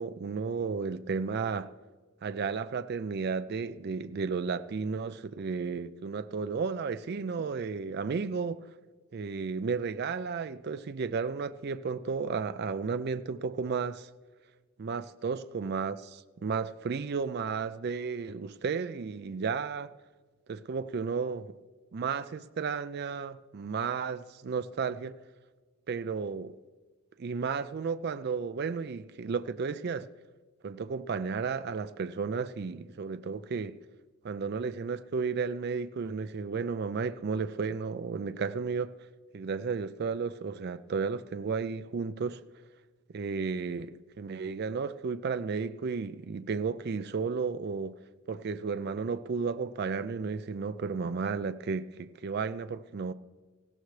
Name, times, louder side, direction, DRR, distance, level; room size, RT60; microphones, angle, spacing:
voice 1, 0.0-1.7 2.2-8.6 9.1-14.1 14.8-19.9 20.5-21.6 21.9-25.1 25.9-26.6 27.2-30.1 30.6-33.8 34.2-38.9 39.3-42.4 43.1-47.9 48.3-53.1, right 5 dB, 45° right, 0.4 m, -33 dB
18.0 x 15.5 x 3.2 m
head